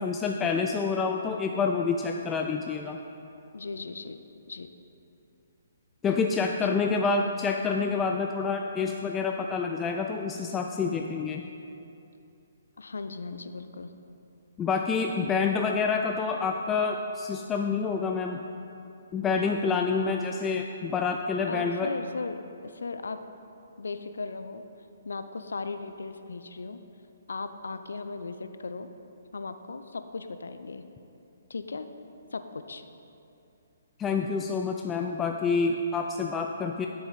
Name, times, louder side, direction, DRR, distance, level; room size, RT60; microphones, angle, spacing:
voice 1, 0.0-3.0 6.0-11.4 14.6-18.4 19.1-21.9 34.0-36.9, left 5 dB, 15° left, 3 dB, 0.4 m, -28 dB
voice 2, 3.5-4.2 4.5-4.7 6.6-6.8 12.8-13.9 21.4-23.2 23.8-24.6 25.0-26.8 27.3-28.9 29.3-30.8 31.5-31.9 32.3-32.8, left 4 dB, 75° left, 10 dB, 0.6 m, -37 dB
10.0 x 7.9 x 4.1 m, 2.7 s
figure-of-eight pair, 130°, 0 cm